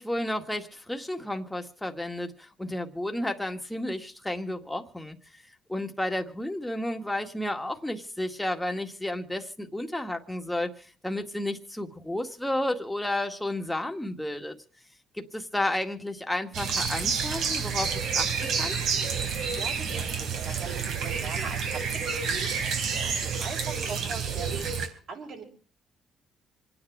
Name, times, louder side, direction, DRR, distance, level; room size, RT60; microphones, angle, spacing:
voice 1, 0.0-5.2 5.7-14.6 15.1-18.3 18.6-18.8, left 1 dB, 5° left, 1.9 m, -32 dB
sound 1, 16.5-24.9, right 6 dB, 75° right, 3.7 m, -29 dB
voice 2, 19.5-25.4, right 5 dB, 60° right, 7.2 m, -41 dB
27.0 x 9.8 x 4.8 m
cardioid pair, 115°, 0 cm